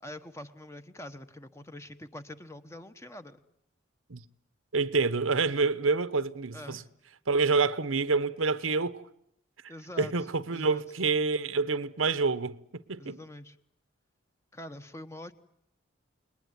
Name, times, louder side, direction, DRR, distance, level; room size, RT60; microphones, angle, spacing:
voice 1, 0.0-3.4 6.5-6.9 9.7-10.8 13.0-13.6 14.5-15.3, left 1 dB, 15° left, 1.1 m, -45 dB
voice 2, 4.7-6.8 7.3-9.0 10.0-13.2, right 4 dB, 90° right, 1.0 m, -27 dB
29.5 x 20.5 x 9.5 m
head